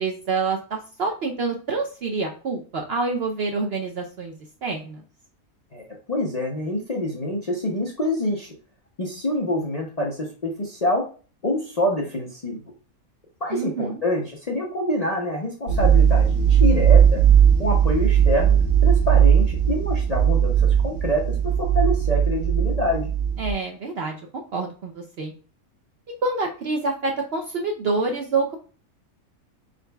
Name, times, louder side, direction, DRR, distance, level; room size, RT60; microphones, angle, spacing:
voice 1, 0.0-4.3 4.6-5.0 13.5-14.0 23.4-25.3 26.2-28.5, right 3 dB, 60° right, 2 dB, 0.6 m, -27 dB
voice 2, 5.7-8.5 9.0-11.0 11.4-12.6 13.4-17.2 17.6-18.6 18.8-23.1, left 1 dB, 45° left, -2 dB, 0.5 m, -26 dB
sound 1, 15.7-23.5, right 8 dB, 80° right, 1.1 m, -18 dB
4.0 x 3.8 x 2.2 m, 0.37 s
omnidirectional pair, 1.5 m